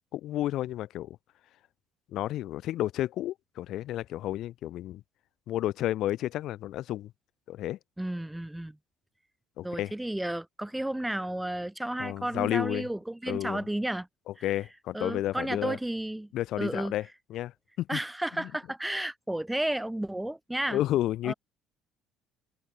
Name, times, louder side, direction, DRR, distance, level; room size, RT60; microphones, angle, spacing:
voice 1, 0.1-1.2 2.1-5.0 5.5-7.1 7.5-7.8 9.6-9.9 12.0-12.9 13.3-13.6 14.4-15.8 16.3-17.0 17.3-17.5 17.8-18.0 18.4-18.5 20.7-21.3, left 14 dB, 65° left, 3.3 m, -31 dB
voice 2, 8.0-8.8 9.6-14.1 14.4-14.5 14.9-16.3 16.6-16.9 17.9-20.8 21.2-21.3, right 1 dB, 5° right, 5.0 m, -32 dB
supercardioid pair, 80°, 0 cm